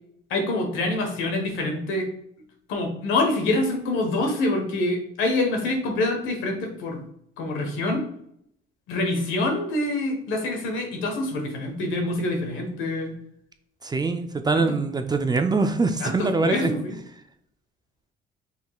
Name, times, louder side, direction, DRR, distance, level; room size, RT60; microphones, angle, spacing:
voice 1, 0.3-2.1 2.7-7.0 7.4-8.0 8.9-13.2 14.5-14.6 16.0-17.0, left 2 dB, 80° left, 3 dB, 1.3 m, -26 dB
voice 2, 13.8-16.7, right 3 dB, 20° right, 8 dB, 0.4 m, -23 dB
5.4 x 3.6 x 2.4 m, 0.71 s
cardioid pair, 95°, 20 cm